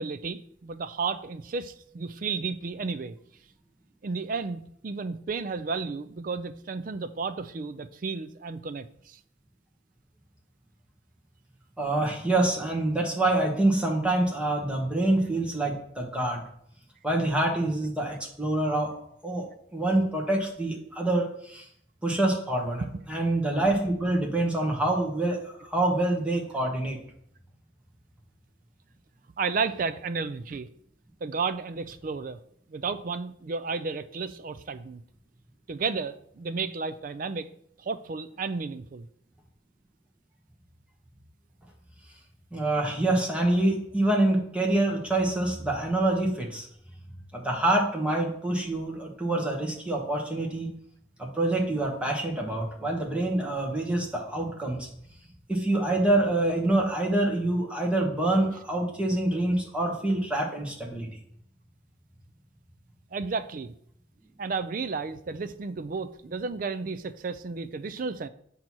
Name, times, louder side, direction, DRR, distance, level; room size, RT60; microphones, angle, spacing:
voice 1, 0.0-3.2 4.0-9.2 22.8-23.0 29.4-30.7 31.2-32.4 32.7-35.0 35.7-37.5 37.8-39.1 63.1-63.7 64.4-68.3, right 4 dB, 45° right, 12 dB, 0.4 m, -32 dB
voice 2, 11.8-16.4 17.0-18.9 19.2-19.4 19.7-21.6 22.0-27.0 42.5-46.7 47.3-50.7 51.2-54.9 55.5-61.1, right 2 dB, 5° right, -2 dB, 1.2 m, -26 dB
7.6 x 2.9 x 6.0 m, 0.68 s
head